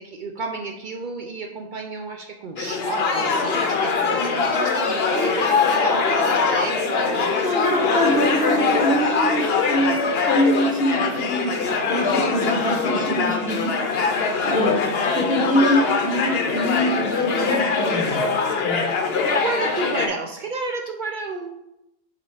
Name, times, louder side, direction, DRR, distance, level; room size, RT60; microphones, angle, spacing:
voice 1, 0.0-7.4 19.3-21.6, right 3 dB, 75° right, 4 dB, 0.4 m, -31 dB
sound 1, 2.6-20.1, left 5 dB, 55° left, 0.9 m, -22 dB
voice 2, 7.4-11.5 11.9-13.7 14.4-14.8 15.1-18.2 18.6-18.9, equal, 5° right, -3 dB, 1.4 m, -24 dB
5.4 x 4.2 x 4.8 m, 0.88 s
omnidirectional pair, 1.4 m